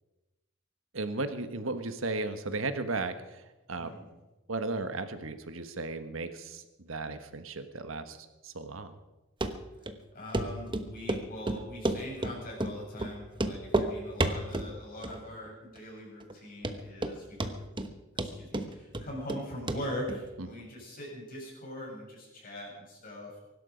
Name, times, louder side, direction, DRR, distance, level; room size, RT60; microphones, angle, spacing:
voice 1, 0.9-3.9 4.5-8.9 20.4-20.6, right 3 dB, 85° right, 9 dB, 1.3 m, -35 dB
Run, 9.4-9.5 9.9-10.0 10.3-10.5 10.7-11.2 11.5-12.3 12.6-12.7 13.0-13.1 13.4-13.9 14.2-14.7 15.0-15.5 15.8-15.9 16.3-16.4 16.6-17.1 17.4-17.9 18.2-19.4 19.7-19.8 20.1-20.2, right 2 dB, 25° right, 1.1 m, -30 dB
voice 2, 10.1-17.5 18.1-23.4, equal, 45° left, -3 dB, 7.7 m, -42 dB
23.5 x 12.0 x 5.1 m, 1.1 s
head